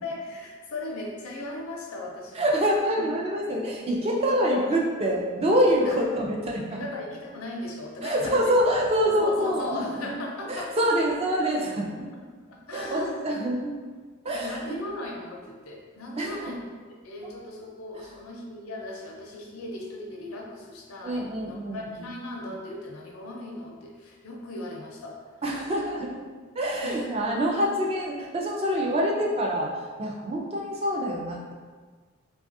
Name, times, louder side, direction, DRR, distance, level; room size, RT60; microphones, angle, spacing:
voice 1, 0.0-2.5 3.0-3.1 4.0-4.8 5.7-6.0 6.7-8.4 9.0-10.7 12.1-12.2 12.5-13.2 13.5-13.6 14.3-16.6 17.0-25.4 26.8-27.1, left 2 dB, 80° left, -1 dB, 0.5 m, -37 dB
voice 2, 2.4-6.8 8.0-10.2 10.5-12.1 12.7-13.7 14.2-14.7 16.2-16.3 17.2-17.3 21.0-21.8 25.4-26.1 26.5-31.5, equal, 30° right, -2 dB, 0.4 m, -26 dB
3.2 x 2.3 x 2.6 m, 1.5 s
head